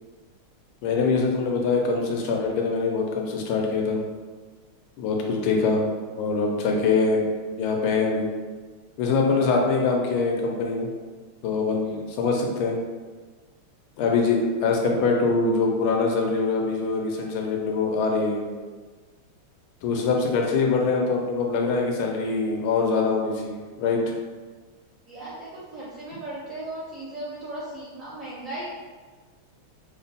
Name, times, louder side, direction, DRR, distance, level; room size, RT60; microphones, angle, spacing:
voice 1, 0.8-4.0 5.0-5.9 6.2-7.2 7.6-8.3 9.0-10.9 11.4-12.8 14.0-18.4 19.8-24.0, left 4 dB, 80° left, 0 dB, 1.5 m, -23 dB
voice 2, 11.8-12.1 25.1-28.7, right 1 dB, 65° right, -9 dB, 0.8 m, -37 dB
3.6 x 2.2 x 4.0 m, 1.4 s
omnidirectional pair, 2.4 m